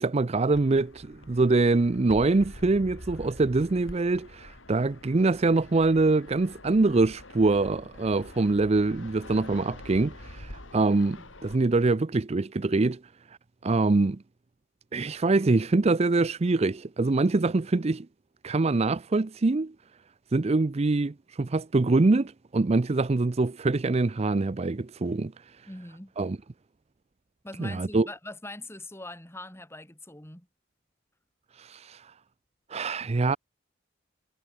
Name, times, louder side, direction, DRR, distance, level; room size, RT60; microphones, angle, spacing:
voice 1, 0.0-13.0 13.3-13.4 13.6-14.2 14.9-18.1 18.4-19.7 20.3-25.3 26.2-26.4 27.6-28.1 31.6-32.1 32.7-33.4, right 3 dB, 30° right, 0.5 m, -24 dB
Fixed-wing aircraft airplane, 0.5-11.6, left 1 dB, 75° left, 5.2 m, -46 dB
voice 2, 25.7-26.1 27.4-30.5, left 2 dB, 15° left, 3.6 m, -42 dB
head